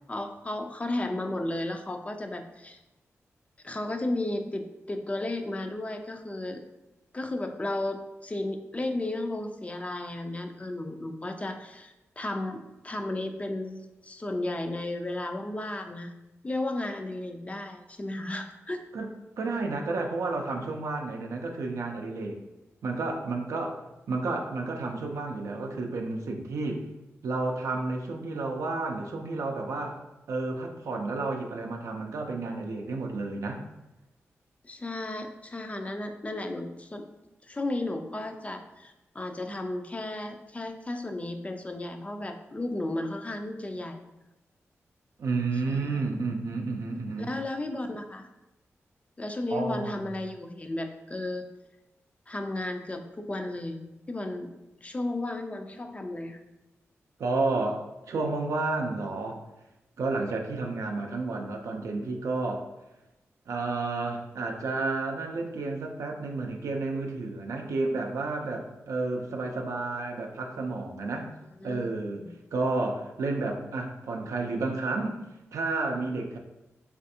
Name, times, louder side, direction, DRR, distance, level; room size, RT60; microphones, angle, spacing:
voice 1, 0.1-2.8 3.6-6.6 7.1-16.1 16.4-18.8 34.6-37.0 37.4-44.0 45.7-46.0 47.2-48.3 49.2-51.5 52.3-53.8 54.1-54.5 54.8-56.4 71.6-72.3, left 2 dB, 25° left, 6 dB, 0.3 m, -34 dB
voice 2, 19.4-22.4 22.8-26.9 27.2-30.0 30.3-33.6 45.2-47.3 49.5-50.0 57.2-59.4 60.0-62.7 63.5-71.3 71.6-72.2 72.5-75.2 75.5-76.4, right 3 dB, 80° right, 2 dB, 0.4 m, -31 dB
3.3 x 2.4 x 2.6 m, 0.97 s
cardioid pair, 50°, 5 cm